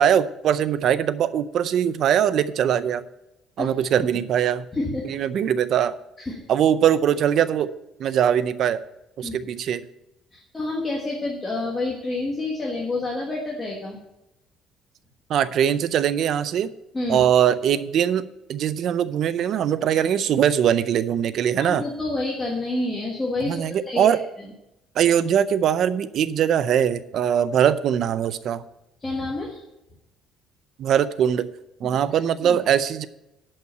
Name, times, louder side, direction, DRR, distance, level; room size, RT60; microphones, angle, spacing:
voice 1, 0.0-3.0 3.6-4.6 5.0-5.9 6.5-7.7 8.0-8.8 9.2-9.8 15.3-16.7 17.1-21.9 23.5-24.2 25.0-28.6 30.8-31.5 31.8-33.1, right 9 dB, 45° right, 15 dB, 0.5 m, -21 dB
voice 2, 4.7-5.1 6.2-6.4 9.2-9.5 10.3-14.0 16.9-17.2 21.6-24.5 29.0-29.6 32.4-32.6, left 2 dB, 15° left, -2 dB, 1.5 m, -28 dB
11.5 x 5.5 x 6.7 m, 0.89 s
cardioid pair, 175°, 0 cm